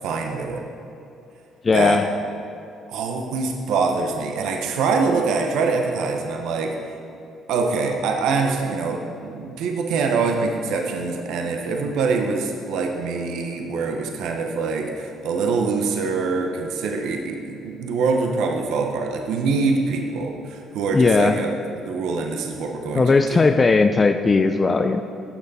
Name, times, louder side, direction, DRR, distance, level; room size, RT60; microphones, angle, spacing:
voice 1, 0.0-0.7 1.7-2.0 2.9-6.9 7.5-21.5 21.9-23.4, right 4 dB, 75° right, 2 dB, 0.9 m, -24 dB
voice 2, 1.6-2.0 20.9-21.4 23.0-25.0, left 4 dB, 35° left, 7 dB, 0.5 m, -17 dB
11.5 x 6.6 x 4.2 m, 2.7 s
supercardioid pair, 65°, 0 cm